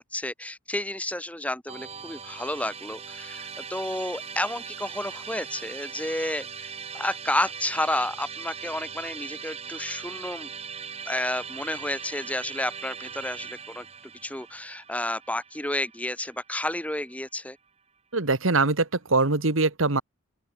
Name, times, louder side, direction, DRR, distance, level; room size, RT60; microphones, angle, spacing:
voice 1, 0.0-10.5 11.1-13.9 14.2-17.6, left 1 dB, 5° left, 6.9 m, -31 dB
Musical instrument, 1.7-16.9, right 6 dB, 30° right, 3.3 m, -40 dB
voice 2, 18.1-20.0, right 3 dB, 80° right, 1.8 m, -23 dB
open air
head